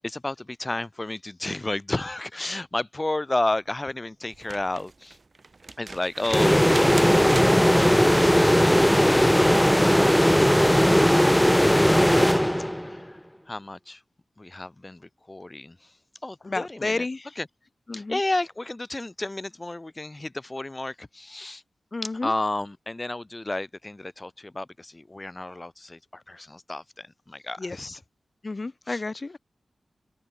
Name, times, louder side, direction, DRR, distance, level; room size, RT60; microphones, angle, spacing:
voice 1, 0.0-5.2 5.8-7.1 12.8-13.2 13.5-14.0 14.4-15.9 16.2-17.1 17.4-17.5 17.9-21.6 22.0-27.9 28.9-29.0, left 2 dB, 30° left, 7.0 m, -32 dB
sound 1, 4.3-9.2 10.8-10.9, right 3 dB, 50° right, 5.5 m, -39 dB
sound 2, 6.3-13.0, equal, 5° left, 1.1 m, -18 dB
voice 2, 16.4-17.3 17.9-18.2 21.9-22.3 27.6-28.0 28.4-29.4, left 3 dB, 45° left, 2.6 m, -31 dB
cardioid pair, 55°, 0 cm